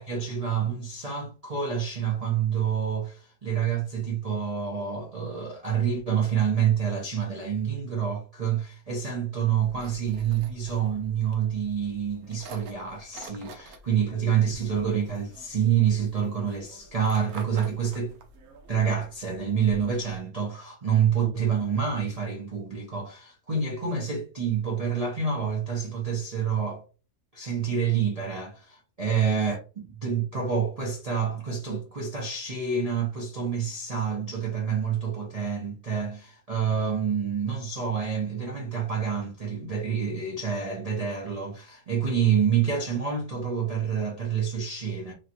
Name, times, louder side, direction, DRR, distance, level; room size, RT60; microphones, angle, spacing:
voice 1, 0.0-18.1 18.7-26.8 27.3-29.6 30.0-45.1, right 7 dB, 45° right, 0.5 m, -27 dB
sound 1, 9.6-20.2, right 3 dB, 70° right, 1.1 m, -48 dB
3.1 x 2.8 x 2.5 m
omnidirectional pair, 1.7 m